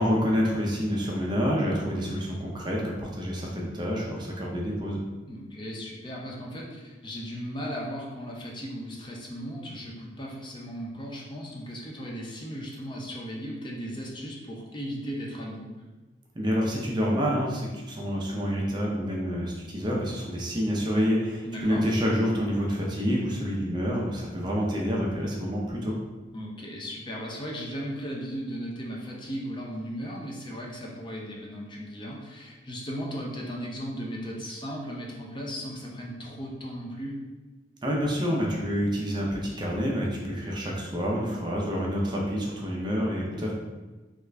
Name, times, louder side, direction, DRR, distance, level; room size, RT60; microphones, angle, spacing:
voice 1, 0.0-5.0 16.3-26.0 37.8-43.5, equal, 25° right, -3 dB, 0.5 m, -28 dB
voice 2, 5.3-15.7 21.4-21.8 26.3-37.1, equal, 25° left, -2 dB, 0.5 m, -36 dB
3.4 x 2.4 x 3.2 m, 1.2 s
head